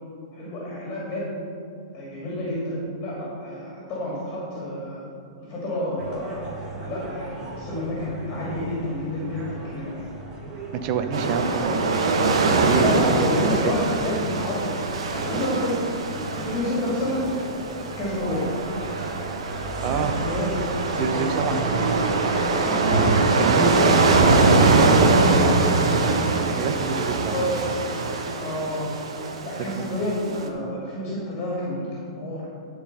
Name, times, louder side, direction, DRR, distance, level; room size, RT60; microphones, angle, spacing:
voice 1, 0.3-1.3 1.9-5.0 5.4-10.0 12.8-14.8 15.1-17.3 18.0-18.5 20.0-21.4 22.6-24.1 27.3-28.1 28.3-28.9 29.4-31.9 32.2-32.5, left 1 dB, 35° left, -5 dB, 2.5 m, -29 dB
sound 1, 6.0-24.8, right 2 dB, 25° right, 1.9 m, -36 dB
voice 2, 10.8-11.9 12.2-13.7 19.8-20.1 21.0-21.6 23.4-23.7 24.4-25.6 26.5-27.4 29.8-29.9, right 6 dB, 40° right, 8 dB, 0.8 m, -27 dB
sound 2, 11.1-30.5, right 3 dB, 80° right, 1.1 m, -23 dB
11.5 x 4.8 x 5.6 m, 2.5 s
hypercardioid pair, 135°, 3 cm